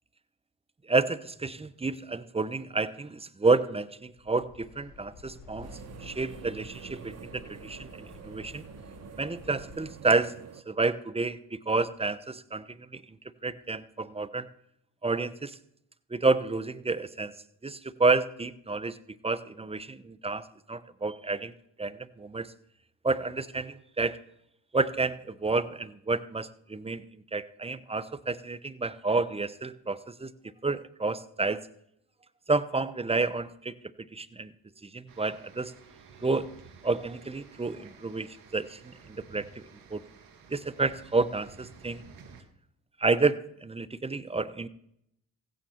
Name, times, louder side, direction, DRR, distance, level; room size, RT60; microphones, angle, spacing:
voice 1, 0.9-5.7 6.0-8.6 9.2-10.3 10.7-13.0 13.4-14.5 15.0-15.6 16.1-17.3 17.6-19.0 19.2-21.5 21.8-22.5 23.0-24.2 24.7-27.0 27.3-30.3 30.6-31.6 32.5-33.7 34.1-34.5 34.8-35.7 36.2-36.5 36.8-39.6 39.9-40.0 40.5-42.0 43.0-44.7, right 3 dB, 15° right, 15 dB, 0.8 m, -30 dB
sound 1, 4.1-9.9, left 4 dB, 70° left, 3.5 m, -50 dB
sound 2, 5.6-10.6, right 8 dB, 45° right, 0.9 m, -47 dB
sound 3, 35.1-42.4, right 5 dB, 70° right, 1.8 m, -53 dB
16.0 x 9.3 x 4.4 m, 0.75 s
supercardioid pair, 60°, 35 cm